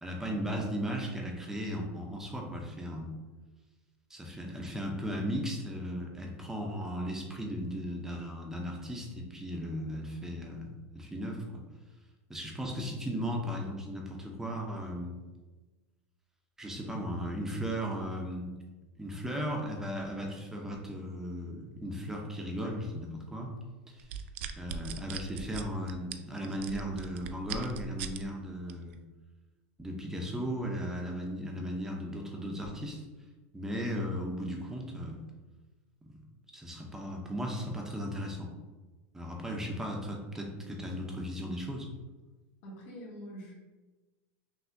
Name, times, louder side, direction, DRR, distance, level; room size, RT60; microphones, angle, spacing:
voice 1, 0.0-3.1 4.1-11.6 12.3-15.1 16.6-18.5 19.0-23.5 23.9-24.1 24.6-29.0 29.8-33.0 33.5-35.2 36.0-36.2 36.5-38.5 39.1-41.9, equal, 5° right, 0 dB, 0.7 m, -36 dB
sound 1, 24.0-28.2 28.7-28.9, right 8 dB, 70° right, 0.4 m, -39 dB
voice 2, 42.6-43.5, equal, 50° left, -4 dB, 1.4 m, -45 dB
5.8 x 2.7 x 2.7 m, 1.2 s
supercardioid pair, 145°, 7 cm